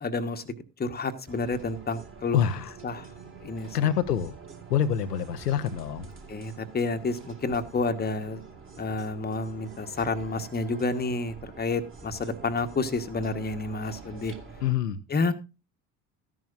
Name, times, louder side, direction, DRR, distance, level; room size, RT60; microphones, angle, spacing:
voice 1, 0.0-2.4 2.8-3.1 3.4-3.8 6.3-8.4 8.8-14.3 15.1-15.3, left 3 dB, 20° left, 8 dB, 1.2 m, -30 dB
sound 1, 1.3-14.7, right 4 dB, 25° right, 2.3 m, -47 dB
voice 2, 2.3-2.7 3.7-4.4 4.7-6.1 14.6-15.0, left 9 dB, 85° left, 9 dB, 0.8 m, -26 dB
14.0 x 11.0 x 2.5 m, 0.28 s
figure-of-eight pair, 55°, 46 cm